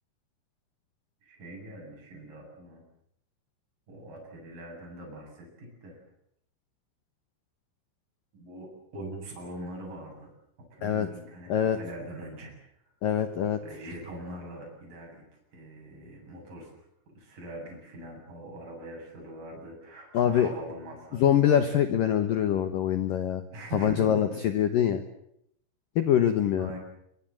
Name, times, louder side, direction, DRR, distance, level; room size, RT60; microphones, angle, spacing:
voice 1, 1.2-2.8 3.9-6.0 8.3-10.3 10.6-12.5 13.6-15.2 15.5-21.2 23.5-24.4 26.6-26.8, right 1 dB, 40° right, -1 dB, 9.3 m, -42 dB
voice 2, 13.0-13.6 20.1-20.5 21.1-23.4 23.7-25.0 26.0-26.7, left 9 dB, 80° left, 9 dB, 2.0 m, -24 dB
25.5 x 23.5 x 7.8 m, 0.75 s
omnidirectional pair, 5.9 m